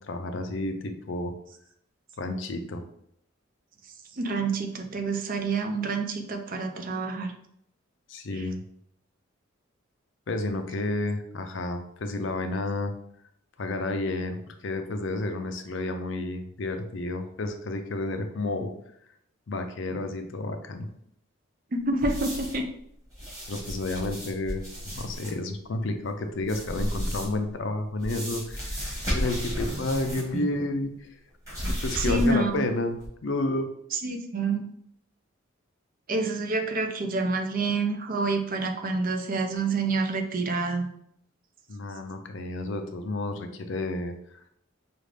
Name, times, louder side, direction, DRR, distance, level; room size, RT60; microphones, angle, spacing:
voice 1, 0.1-1.3 2.2-2.8 8.1-8.6 10.3-12.9 13.6-18.7 19.5-20.9 23.5-31.1 31.8-33.0 33.2-33.7 41.7-44.1, left 2 dB, 60° left, 6 dB, 0.5 m, -31 dB
voice 2, 4.2-7.3 21.7-22.7 30.3-30.5 31.6-32.7 33.9-34.6 36.1-40.9, right 3 dB, 40° right, 5 dB, 0.5 m, -28 dB
sound 1, 22.0-22.7 23.1-25.3 26.4-27.4 28.0-30.4 30.6-30.7 31.4-32.5 33.0-33.1, equal, 15° right, 1.6 m, -33 dB
5.1 x 2.4 x 3.3 m, 0.71 s
head